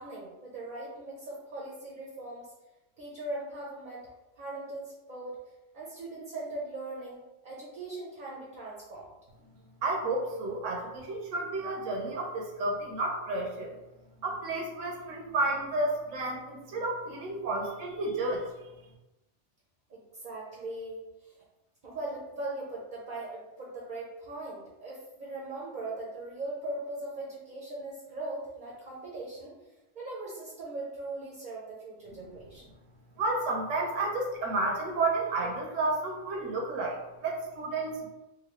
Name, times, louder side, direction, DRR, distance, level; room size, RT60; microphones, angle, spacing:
voice 1, 0.0-2.5 3.0-4.0 4.3-5.4 5.7-7.2 7.4-9.1 19.9-21.4 21.8-29.5 29.9-32.6, right 2 dB, 45° right, -5 dB, 0.7 m, -40 dB
voice 2, 9.8-13.8 14.2-18.5 33.2-38.1, right 2 dB, 85° right, 0 dB, 1.1 m, -31 dB
3.0 x 2.6 x 3.0 m, 1.0 s
omnidirectional pair, 1.3 m